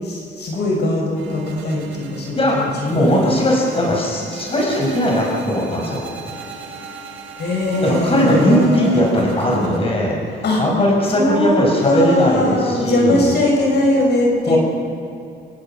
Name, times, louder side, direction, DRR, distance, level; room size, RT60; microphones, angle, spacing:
voice 1, 0.0-3.0 7.4-9.1 10.4-10.6 11.1-11.6 11.8-14.6, left 1 dB, 60° left, -1 dB, 6.9 m, -20 dB
sound 1, 1.2-9.8, right 4 dB, 85° right, 3.4 m, -37 dB
voice 2, 2.3-6.1 7.8-10.2 10.6-13.3 14.5-14.6, equal, 30° left, -2 dB, 5.9 m, -18 dB
30.0 x 16.5 x 6.0 m, 2.6 s
cardioid pair, 90°, 20 cm